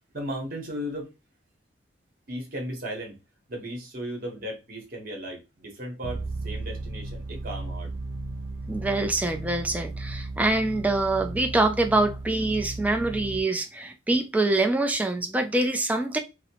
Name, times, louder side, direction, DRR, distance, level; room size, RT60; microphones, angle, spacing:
voice 1, 0.1-1.1 2.3-3.2 3.5-7.9, equal, 50° right, 1.0 m, -36 dB
sound 1, 6.0-13.4, right 2 dB, 70° right, 0.4 m, -35 dB
voice 2, 8.7-16.2, right 2 dB, 10° right, 0.3 m, -25 dB
2.7 x 2.0 x 2.8 m
head